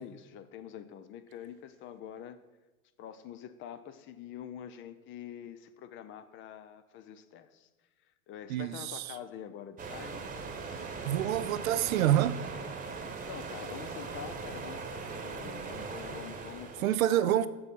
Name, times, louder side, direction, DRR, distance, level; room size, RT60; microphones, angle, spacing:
voice 1, 0.0-2.4 3.0-7.7 8.3-10.3 13.3-17.4, left 9 dB, 30° left, 0.5 m, -46 dB
voice 2, 8.5-9.2 11.1-12.4 16.8-17.5, right 12 dB, 75° right, 0.6 m, -27 dB
sound 1, 9.8-16.9, right 4 dB, 20° right, 1.1 m, -40 dB
6.8 x 6.8 x 5.4 m
hypercardioid pair, 95°, 41 cm